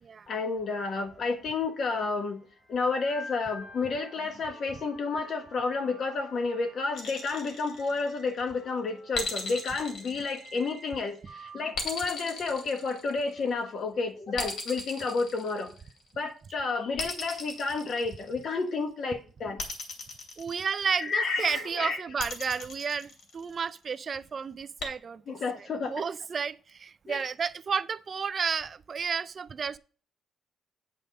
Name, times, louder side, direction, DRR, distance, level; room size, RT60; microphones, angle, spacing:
voice 1, 0.3-15.7 16.2-19.6 21.0-22.0 25.3-26.0 27.1-27.3, left 4 dB, 40° left, 1.3 m, -31 dB
sound 1, 0.9-13.6, left 1 dB, 15° left, 1.8 m, -50 dB
sound 2, 6.9-8.4 9.1-11.0 11.7-13.5 14.4-16.1 17.0-18.6 19.6-21.1 22.2-23.7 24.8-24.9, left 3 dB, 60° left, 2.9 m, -37 dB
voice 2, 20.4-25.4 25.9-29.8, right 6 dB, 30° right, 0.3 m, -32 dB
9.2 x 5.2 x 5.1 m
cardioid pair, 175°, 0 cm